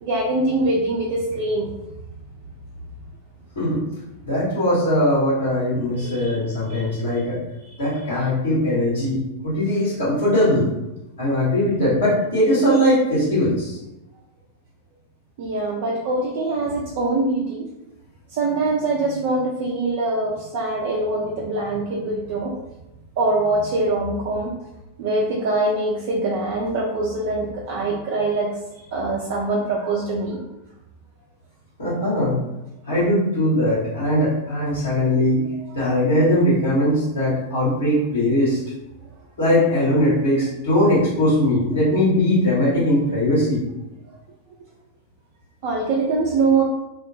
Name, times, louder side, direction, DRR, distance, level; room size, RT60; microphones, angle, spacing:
voice 1, 0.0-1.8 6.0-6.4 6.7-7.0 15.4-17.7 18.3-22.5 23.2-24.5 25.0-28.6 28.9-30.4 45.6-46.6, right 2 dB, 50° right, -2 dB, 0.4 m, -23 dB
voice 2, 4.2-7.4 7.8-10.6 11.2-13.8 31.8-32.4 32.9-35.4 35.7-38.6 39.4-43.6, left 1 dB, 70° left, -9 dB, 1.1 m, -20 dB
2.2 x 2.0 x 3.0 m, 0.92 s
figure-of-eight pair, 90°, 0 cm